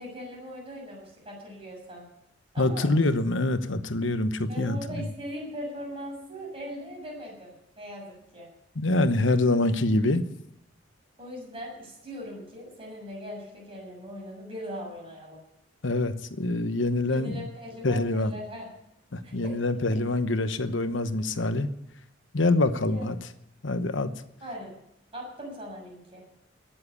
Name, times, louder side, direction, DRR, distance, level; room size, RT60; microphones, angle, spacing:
voice 1, 0.0-2.1 2.5-2.9 4.5-8.5 11.2-15.4 17.1-18.7 19.2-19.5 22.8-23.1 24.4-24.7 25.1-26.2, equal, 30° right, -1 dB, 6.9 m, -40 dB
voice 2, 2.6-5.0 8.7-10.2 15.8-17.5 17.8-18.4 19.1-21.7 22.3-23.2 23.6-24.1, left 2 dB, 75° left, 11 dB, 1.0 m, -25 dB
19.5 x 7.7 x 8.5 m, 0.78 s
head